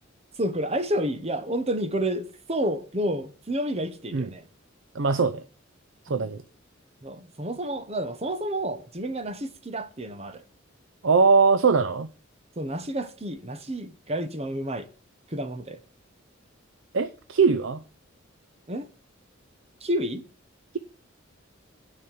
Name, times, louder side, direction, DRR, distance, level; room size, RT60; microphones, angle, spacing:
voice 1, 0.4-4.5 6.1-6.3 7.0-10.4 12.6-14.9 15.3-15.8 18.7-18.9 19.8-20.3, right 1 dB, 30° right, 1.1 m, -30 dB
voice 2, 4.9-5.4 6.0-6.4 11.0-12.1 16.9-17.8, right 5 dB, 70° right, 0.6 m, -21 dB
9.7 x 5.3 x 7.5 m
head